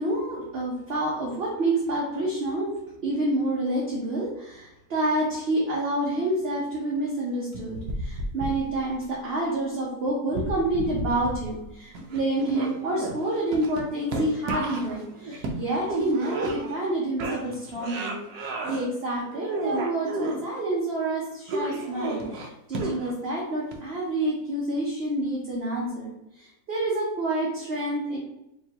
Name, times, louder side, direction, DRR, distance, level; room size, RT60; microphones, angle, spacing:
voice 1, 0.0-2.7 3.0-28.2, right 1 dB, 45° right, -4 dB, 0.9 m, -28 dB
Fight - fighting men, 7.5-9.0 10.3-11.7 11.9-16.9 17.2-18.9 19.3-20.4 21.5-23.3 23.7-23.8, right 2 dB, 75° right, 1.2 m, -32 dB
4.6 x 3.1 x 2.8 m, 0.88 s
omnidirectional pair, 1.7 m